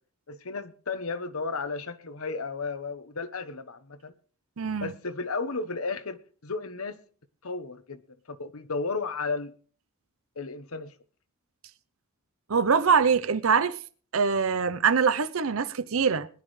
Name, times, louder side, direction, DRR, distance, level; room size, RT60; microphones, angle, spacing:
voice 1, 0.3-4.1 4.8-7.0 7.4-8.0 8.3-9.5 10.4-10.9, left 4 dB, 75° left, 1.1 m, -33 dB
voice 2, 4.6-4.9 12.5-13.8 14.1-16.3, right 6 dB, 65° right, 0.7 m, -23 dB
21.0 x 11.0 x 3.2 m
head